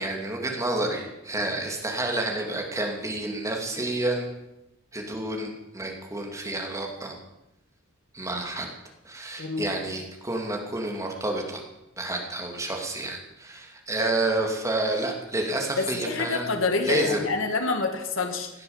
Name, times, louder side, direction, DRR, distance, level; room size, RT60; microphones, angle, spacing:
voice 1, 0.0-4.3 4.9-7.2 8.1-8.7 9.0-11.6 12.0-16.5 16.8-17.3, right 2 dB, 15° right, 1 dB, 2.6 m, -29 dB
voice 2, 9.4-9.7 16.0-18.5, left 3 dB, 65° left, 5 dB, 1.8 m, -27 dB
17.0 x 9.1 x 7.3 m, 0.94 s
head